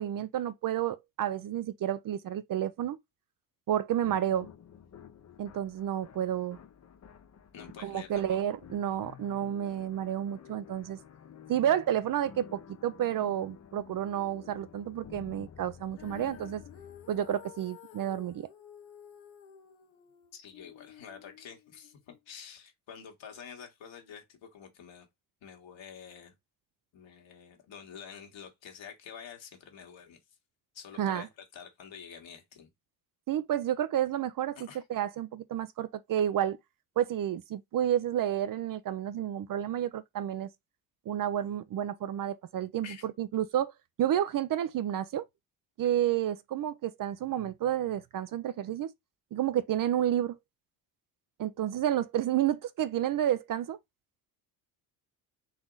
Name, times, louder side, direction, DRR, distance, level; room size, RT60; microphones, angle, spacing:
voice 1, 0.0-3.0 3.7-4.5 5.4-6.6 7.8-11.0 11.5-16.6 17.1-18.5 31.0-31.3 33.3-34.6 34.9-36.6 37.0-40.5 41.1-43.7 44.0-45.3 45.8-48.9 49.3-50.4 51.4-53.8, right 11 dB, 45° right, 0.5 m, -30 dB
sound 1, 4.0-17.7, left 8 dB, 35° left, 0.7 m, -52 dB
voice 2, 7.5-8.4 20.3-25.1 25.4-26.3 26.9-30.2 30.7-32.7 34.5-34.8 42.8-43.1, left 7 dB, 65° left, 1.6 m, -48 dB
Female singing, 16.0-22.2, left 10 dB, 90° left, 0.9 m, -52 dB
4.1 x 2.9 x 3.8 m
supercardioid pair, 60°, 49 cm